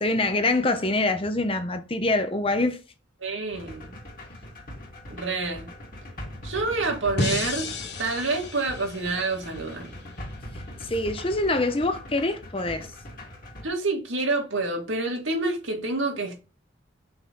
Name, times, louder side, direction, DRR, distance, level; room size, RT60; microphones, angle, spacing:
voice 1, 0.0-2.8 10.8-12.9, left 2 dB, 30° left, 0.8 m, -25 dB
voice 2, 3.2-3.9 5.1-5.7 6.4-7.7 8.0-10.1 13.6-16.4, right 3 dB, 90° right, 2.4 m, -28 dB
sound 1, 3.5-13.7, left 1 dB, 45° left, 2.2 m, -41 dB
sound 2, 7.2-10.3, left 3 dB, 60° left, 1.2 m, -33 dB
6.0 x 4.0 x 5.3 m
head